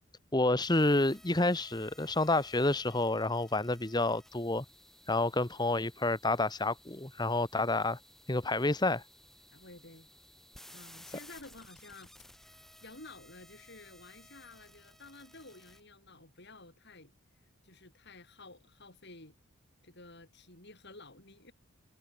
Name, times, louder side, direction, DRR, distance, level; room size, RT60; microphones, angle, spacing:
voice 1, 0.3-4.6 5.1-8.0 8.3-9.0, left 2 dB, 20° left, 1.1 m, -29 dB
sound 1, 0.6-15.8, left 1 dB, ahead, 3.6 m, -58 dB
voice 2, 9.5-10.1 10.7-12.6 12.8-17.1 17.6-19.4 19.8-21.5, left 2 dB, 50° left, 7.8 m, -52 dB
head